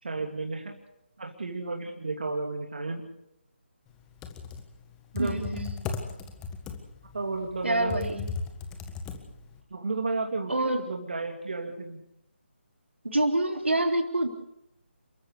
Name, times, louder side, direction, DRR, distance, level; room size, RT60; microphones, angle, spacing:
voice 1, 0.0-0.7 1.2-3.0 5.1-5.4 7.1-8.0 9.7-12.0, right 3 dB, 50° right, 2 dB, 2.9 m, -32 dB
Computer keyboard, 4.0-9.6, left 4 dB, 10° left, 1.6 m, -37 dB
voice 2, 5.2-5.7 7.6-8.2 10.5-10.8 13.0-14.3, right 1 dB, 70° right, 5 dB, 3.4 m, -26 dB
30.0 x 14.0 x 6.7 m, 0.79 s
figure-of-eight pair, 150°, 7 cm